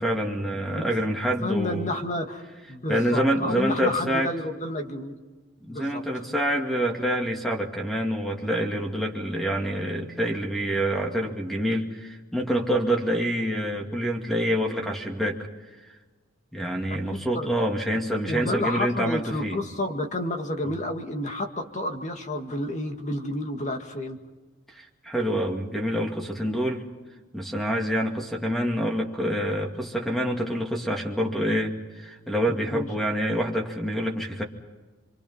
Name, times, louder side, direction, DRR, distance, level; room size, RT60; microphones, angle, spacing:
voice 1, 0.0-1.9 2.9-4.3 5.6-15.5 15.9-16.0 16.5-19.6 20.6-20.7 24.7-26.9 27.3-34.4, equal, ahead, 2 dB, 2.4 m, -27 dB
voice 2, 1.4-2.4 2.7-5.2 5.7-6.2 17.1-17.5 18.3-24.2 32.5-32.9, left 1 dB, 35° left, 4 dB, 2.0 m, -30 dB
27.0 x 25.0 x 5.6 m, 1.3 s
head